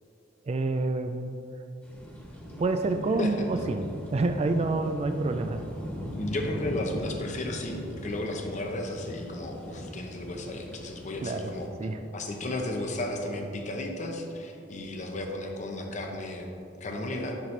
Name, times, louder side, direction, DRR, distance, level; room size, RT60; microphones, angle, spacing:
voice 1, 0.4-1.4 2.6-5.6 11.2-11.5 11.8-12.1, right 3 dB, 35° right, 7 dB, 0.3 m, -28 dB
sound 1, 1.8-11.7, equal, 10° left, 1.5 m, -40 dB
voice 2, 6.1-11.7 12.1-16.5 16.8-17.4, left 1 dB, 40° left, 2 dB, 0.7 m, -34 dB
10.5 x 5.9 x 3.2 m, 2.8 s
head